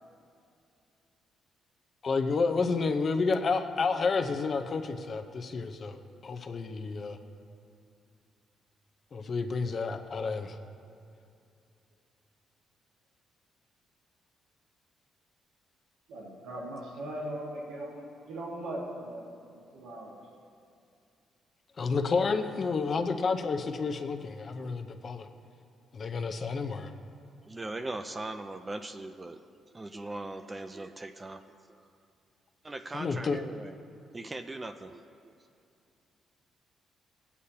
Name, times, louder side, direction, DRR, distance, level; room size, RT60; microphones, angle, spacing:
voice 1, 2.0-7.2 9.1-10.6 21.8-25.3 25.9-26.9 32.9-33.4, left 4 dB, 45° left, 6 dB, 0.7 m, -30 dB
voice 2, 16.1-19.2 19.5-20.2, right 1 dB, 85° right, -6 dB, 1.7 m, -39 dB
voice 3, 27.5-29.4 29.7-31.4 31.7-31.8 32.6-33.8 34.1-35.3, right 2 dB, 20° right, 8 dB, 0.4 m, -40 dB
17.5 x 8.3 x 2.8 m, 2.5 s
cardioid pair, 90°, 0 cm